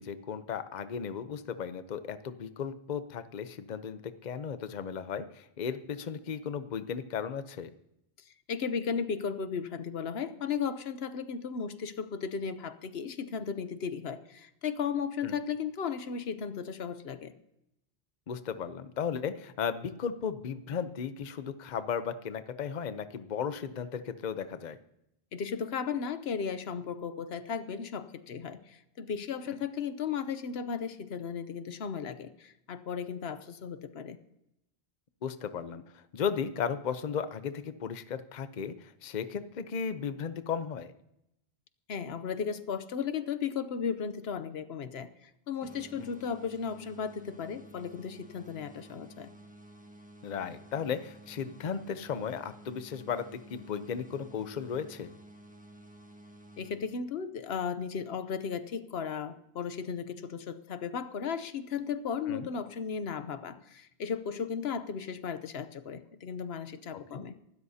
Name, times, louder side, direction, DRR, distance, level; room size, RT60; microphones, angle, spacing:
voice 1, 0.0-7.7 15.2-15.4 18.3-24.8 35.2-40.9 46.0-46.1 50.2-55.1 62.3-62.5 66.9-67.2, left 7 dB, 50° left, 11 dB, 0.8 m, -35 dB
voice 2, 8.5-17.3 25.3-34.2 41.9-49.3 56.6-67.3, left 6 dB, 80° left, 11 dB, 1.0 m, -35 dB
sound 1, 45.6-57.3, right 1 dB, 10° right, 1.5 m, -53 dB
24.5 x 12.5 x 2.8 m, 0.82 s
omnidirectional pair, 1.1 m